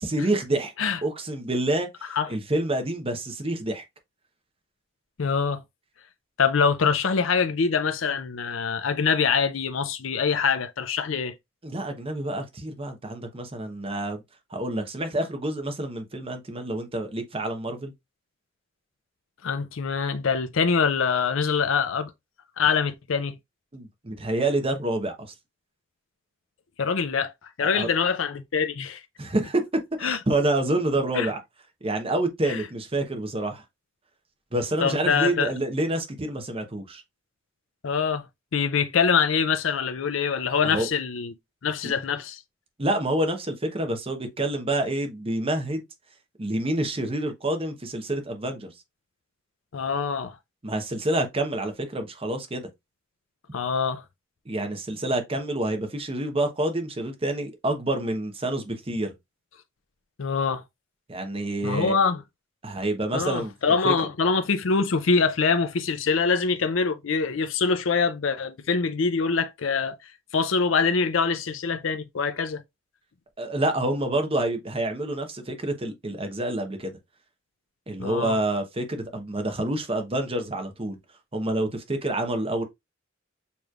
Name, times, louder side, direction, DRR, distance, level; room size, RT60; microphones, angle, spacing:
voice 1, 0.0-0.7 1.0-3.8 11.6-14.2 14.5-17.9 23.7-25.2 27.6-27.9 29.2-29.6 30.0-31.4 31.8-33.6 34.5-37.0 40.6-40.9 42.8-45.8 46.4-48.7 50.6-52.7 54.5-59.1 61.1-61.9 62.6-63.5 63.8-63.9 73.4-77.0 77.9-81.0 81.3-82.6, right 1 dB, 30° right, 0.9 m, -28 dB
voice 2, 5.2-5.6 6.4-11.3 19.4-22.1 22.6-23.4 26.8-27.3 27.6-29.0 30.0-30.2 31.1-31.3 32.4-32.6 34.8-35.5 37.8-38.3 38.5-41.3 41.6-42.4 49.7-50.4 53.5-54.0 60.2-60.6 61.6-62.2 63.1-72.6 78.0-78.4, left 5 dB, 75° left, 0.5 m, -24 dB
6.9 x 3.1 x 2.4 m
head